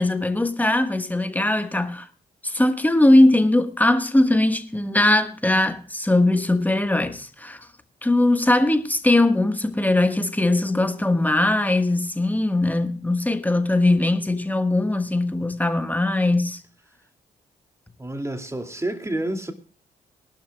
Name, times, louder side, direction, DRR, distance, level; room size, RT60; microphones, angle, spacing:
voice 1, 0.0-2.1 2.4-7.7 8.0-16.6, left 1 dB, 10° left, 1.4 m, -20 dB
voice 2, 18.0-19.5, right 1 dB, 15° right, 2.5 m, -29 dB
22.5 x 12.0 x 2.3 m
hypercardioid pair, 45°, 18 cm